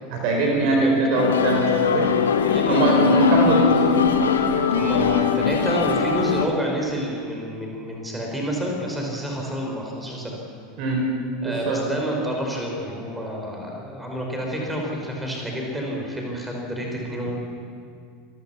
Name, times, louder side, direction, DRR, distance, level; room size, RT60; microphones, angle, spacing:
voice 1, 0.1-2.1 2.4-3.8 10.8-11.0 11.4-11.8, right 2 dB, 50° right, 1 dB, 4.7 m, -22 dB
sound 1, 1.2-6.5, left 6 dB, 70° left, 1.3 m, -20 dB
voice 2, 2.4-3.2 4.7-10.4 11.4-17.3, equal, 5° right, -1 dB, 5.3 m, -29 dB
27.0 x 14.5 x 7.3 m, 2.3 s
figure-of-eight pair, 80°, 0 cm